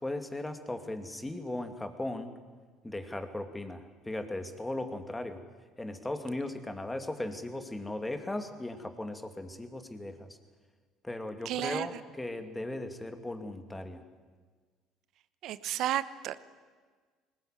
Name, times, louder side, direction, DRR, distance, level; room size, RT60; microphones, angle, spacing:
voice 1, 0.0-2.3 2.8-5.4 5.8-10.4 11.0-14.0, left 1 dB, 10° left, 7 dB, 2.5 m, -37 dB
voice 2, 11.4-12.0 15.4-16.4, right 12 dB, 65° right, 15 dB, 1.0 m, -32 dB
20.5 x 19.5 x 9.3 m, 1.5 s
supercardioid pair, 80°, 0 cm